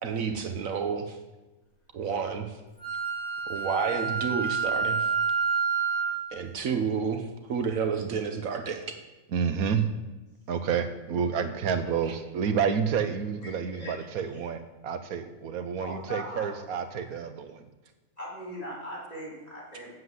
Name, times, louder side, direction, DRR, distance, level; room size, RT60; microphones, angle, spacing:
voice 1, 0.0-1.2 1.9-2.6 3.5-5.1 6.3-9.0 12.1-12.2, right 6 dB, 70° right, 5 dB, 1.3 m, -30 dB
Wind instrument woodwind instrument, 2.8-6.2, right 5 dB, 65° left, 3.3 m, -28 dB
voice 2, 9.3-9.8 10.5-17.7, right 7 dB, 90° right, 9 dB, 1.3 m, -29 dB
voice 3, 13.8-14.2 15.8-16.6 17.1-17.2 18.2-19.9, equal, 25° left, -6 dB, 4.8 m, -39 dB
7.9 x 7.8 x 7.8 m, 1.1 s
omnidirectional pair, 1.5 m